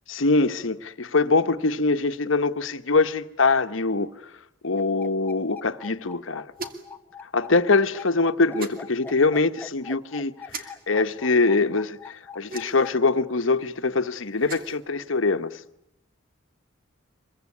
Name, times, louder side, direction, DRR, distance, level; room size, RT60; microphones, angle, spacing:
voice 1, 0.1-4.1 4.6-6.5 7.2-15.6, left 3 dB, 80° left, 1.1 m, -23 dB
sound 1, 4.8-12.9, left 5 dB, 10° left, 1.1 m, -42 dB
sound 2, 6.5-7.0 8.6-8.8 10.5-10.6 12.5-12.9 14.3-14.8, right 4 dB, 45° right, 2.7 m, -37 dB
25.0 x 23.0 x 9.7 m
head